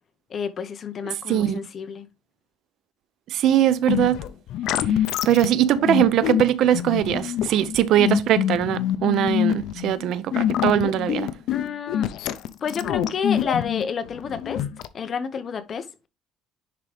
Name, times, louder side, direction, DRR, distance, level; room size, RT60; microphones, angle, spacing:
voice 1, 0.3-2.1 11.5-12.1 12.6-14.6 14.9-16.1, left 6 dB, 30° left, 0.7 m, -30 dB
voice 2, 1.3-1.6 3.3-4.2 5.3-11.3, right 11 dB, 55° right, 0.5 m, -21 dB
sound 1, 3.8-14.9, left 11 dB, 65° left, 0.5 m, -26 dB
10.5 x 3.7 x 3.3 m
cardioid pair, 170°, 0 cm